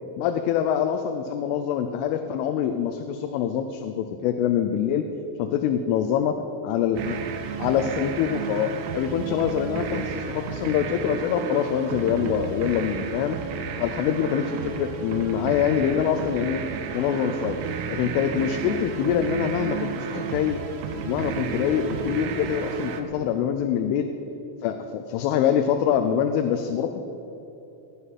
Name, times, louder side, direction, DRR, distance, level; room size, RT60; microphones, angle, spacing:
voice 1, 0.2-5.0 5.4-6.3 6.6-7.2 7.6-13.4 13.8-16.6 16.9-17.6 17.9-20.6 21.0-24.1 24.6-27.1, left 9 dB, 85° left, 7 dB, 3.2 m, -25 dB
sound 1, 7.0-23.0, right 6 dB, 85° right, 3.5 m, -32 dB
19.0 x 10.0 x 5.7 m, 3.0 s
omnidirectional pair, 5.6 m